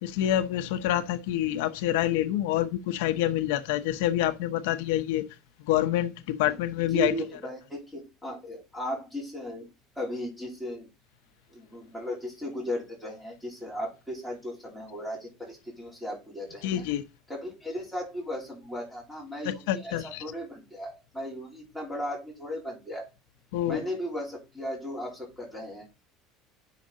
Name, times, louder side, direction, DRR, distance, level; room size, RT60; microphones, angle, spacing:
voice 1, 0.0-5.2 5.7-7.1 16.6-17.0 19.4-20.2 23.5-23.8, left 12 dB, 90° left, 0.9 m, -27 dB
voice 2, 6.9-9.7 10.0-10.9 11.5-16.8 17.3-23.0 23.6-25.9, equal, ahead, 3.1 m, -36 dB
7.4 x 5.8 x 3.9 m
cardioid pair, 160°, 0 cm